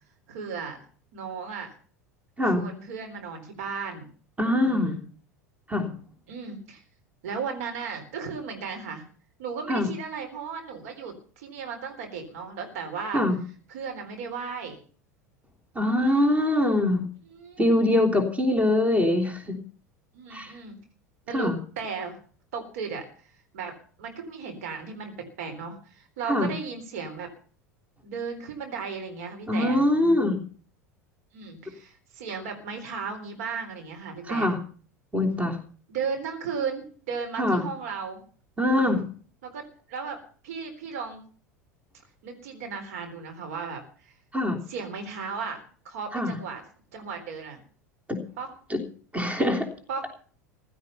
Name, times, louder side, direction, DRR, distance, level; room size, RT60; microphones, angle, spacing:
voice 1, 0.3-0.8 1.1-1.7 2.5-4.1 4.6-5.0 6.3-6.8 7.2-9.1 9.4-13.2 13.7-14.8 17.3-17.6 20.1-20.8 21.3-22.2 22.5-23.0 23.5-23.7 24.0-27.3 28.0-29.8 31.3-34.5 35.9-38.2 39.4-41.2 42.2-44.1 44.7-46.6 46.9-47.6 48.4-48.5 49.9-50.0, right 5 dB, 60° right, 4 dB, 3.8 m, -35 dB
voice 2, 4.4-4.9 5.7-5.9 9.7-9.9 13.1-13.4 15.7-17.0 17.6-19.6 20.3-20.5 21.3-21.6 26.3-26.5 29.5-30.4 34.3-34.6 35.1-35.6 37.4-37.6 38.6-39.0 44.3-44.6 46.1-46.4 48.7-48.8 49.1-49.7, left 1 dB, 15° right, 5 dB, 3.3 m, -23 dB
16.0 x 12.0 x 5.7 m, 0.43 s
figure-of-eight pair, 80°, 9 cm